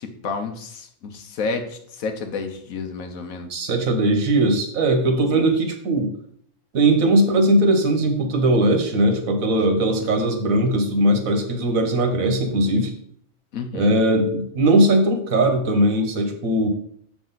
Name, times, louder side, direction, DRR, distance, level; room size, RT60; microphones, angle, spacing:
voice 1, 0.0-3.6 5.3-5.5 10.0-10.1 13.5-13.9, left 4 dB, 85° left, 6 dB, 1.4 m, -31 dB
voice 2, 3.5-6.1 6.7-12.9 13.7-16.7, right 1 dB, 85° right, 5 dB, 1.5 m, -19 dB
6.8 x 6.1 x 4.0 m, 0.65 s
omnidirectional pair, 1.4 m